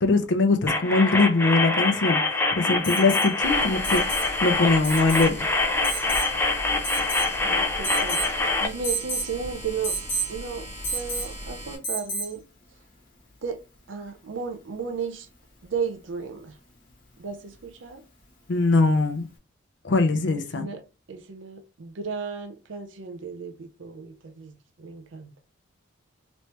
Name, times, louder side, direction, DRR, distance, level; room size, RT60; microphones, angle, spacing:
voice 1, 0.0-5.5 18.5-19.3 19.8-20.7, left 3 dB, 65° left, 0.5 m, -22 dB
sound 1, 0.7-8.7, left 3 dB, 10° left, 0.5 m, -25 dB
Alarm, 2.8-3.3 3.8-4.3 4.8-5.3 5.8-6.3 6.8-7.4 7.8-8.3 8.8-9.3 9.8-10.3 10.8-11.3 11.8-12.3 14.1-14.2, right 2 dB, 40° left, 1.1 m, -31 dB
sound 2, 3.4-11.7, equal, 35° right, 1.5 m, -38 dB
voice 2, 7.2-10.0 10.3-12.4 13.4-13.6 13.9-15.3 15.6-16.6 17.2-18.0 20.3-20.8 21.1-25.3, right 5 dB, 70° right, 0.6 m, -34 dB
3.1 x 3.1 x 2.9 m
head